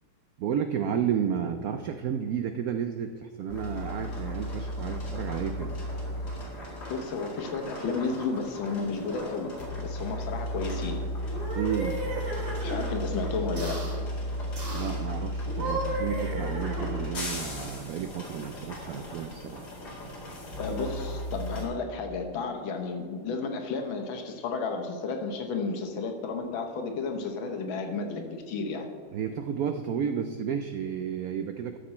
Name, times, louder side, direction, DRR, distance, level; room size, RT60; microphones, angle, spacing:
voice 1, 0.4-5.8 11.5-12.0 14.7-19.7 29.1-31.8, right 8 dB, 80° right, 7 dB, 0.8 m, -32 dB
sound 1, 3.5-21.7, equal, 55° left, 2.7 m, -35 dB
voice 2, 6.9-11.0 12.6-13.8 20.6-28.9, left 4 dB, 85° left, 4 dB, 1.9 m, -32 dB
sound 2, 11.2-12.9 13.6-14.0 14.6-15.0 15.4-17.2, right 2 dB, 55° right, 2.6 m, -35 dB
12.5 x 6.7 x 4.3 m, 2.1 s
omnidirectional pair, 2.1 m